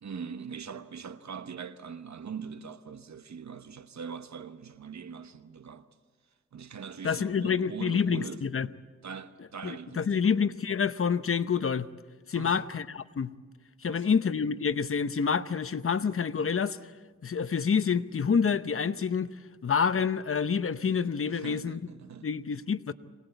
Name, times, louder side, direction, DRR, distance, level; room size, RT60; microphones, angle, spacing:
voice 1, 0.0-5.9 6.5-8.4 9.0-10.4 12.3-12.7 13.8-14.2 21.3-22.3, right 6 dB, 70° right, 1.2 m, -42 dB
voice 2, 7.0-8.7 9.6-11.9 12.3-13.3 13.8-16.8 17.2-19.3 19.6-21.8 22.2-22.9, left 6 dB, 50° left, 0.8 m, -27 dB
24.0 x 19.5 x 8.0 m
cardioid pair, 75°, 29 cm